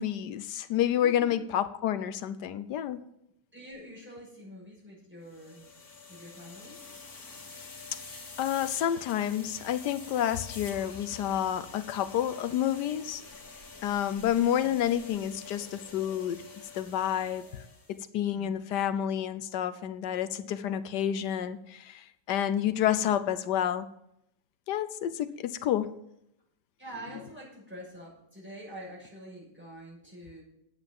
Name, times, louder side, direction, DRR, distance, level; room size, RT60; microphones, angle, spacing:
voice 1, 0.0-3.0 8.4-13.2 13.8-16.4 16.7-17.5 17.9-23.9 24.7-25.9, left 10 dB, 90° left, 12 dB, 1.3 m, -29 dB
voice 2, 1.0-1.4 3.5-5.7 6.1-6.8 14.6-14.8 18.3-18.6 26.8-30.4, equal, 5° right, -5 dB, 6.3 m, -46 dB
sound 1, 5.3-18.0, left 4 dB, 60° left, 2.5 m, -47 dB
9.7 x 9.0 x 7.6 m, 0.79 s
omnidirectional pair, 1.8 m